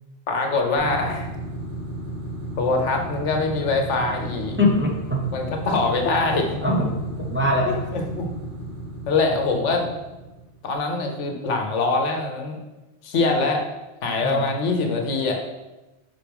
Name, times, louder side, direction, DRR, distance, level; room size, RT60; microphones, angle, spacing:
voice 1, 0.3-1.3 2.6-4.6 5.3-6.6 7.9-8.3 9.1-9.9 10.6-12.6 13.0-13.6 14.0-15.4, left 3 dB, 80° left, 3 dB, 1.2 m, -23 dB
sound 1, 0.8-10.6, right 1 dB, 45° right, 1.3 m, -34 dB
voice 2, 4.6-5.2 6.6-7.8 14.2-14.5, left 1 dB, 10° right, -1 dB, 0.8 m, -22 dB
5.8 x 5.6 x 3.5 m, 1.1 s
omnidirectional pair, 1.2 m